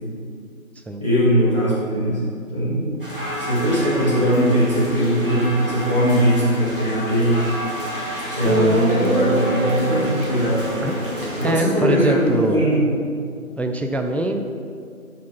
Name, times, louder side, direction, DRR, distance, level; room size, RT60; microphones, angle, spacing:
voice 1, 1.0-2.2 2.5-2.8 3.4-7.4 8.3-10.6 11.4-12.8, equal, 20° right, -12 dB, 1.5 m, -20 dB
sound 1, 3.0-11.5, equal, 40° right, 1.3 m, -30 dB
Guitar, 7.9-8.0 8.4-12.6, right 1 dB, 85° right, 1.2 m, -24 dB
voice 2, 8.4-8.8 10.8-10.9 11.4-12.6 13.6-14.4, right 1 dB, 5° left, 4 dB, 0.3 m, -23 dB
5.9 x 4.2 x 5.6 m, 2.2 s
figure-of-eight pair, 175°, 42 cm